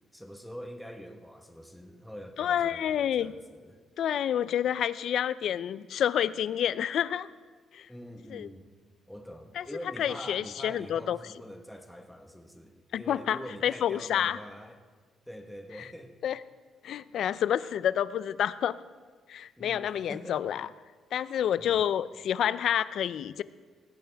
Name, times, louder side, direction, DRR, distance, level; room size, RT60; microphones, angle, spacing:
voice 1, 0.1-3.8 7.9-8.7 9.1-14.8 15.3-16.2 19.6-20.4 21.6-21.9, equal, ahead, 4 dB, 1.2 m, -44 dB
voice 2, 2.4-3.3 4.0-7.3 7.7-7.9 8.3-8.5 9.6-9.7 10.0-11.2 12.9-14.4 16.2-16.4 16.8-18.8 19.3-20.7 21.1-23.4, left 10 dB, 70° left, 17 dB, 0.5 m, -29 dB
19.0 x 16.0 x 3.5 m, 1.5 s
cardioid pair, 90°, 0 cm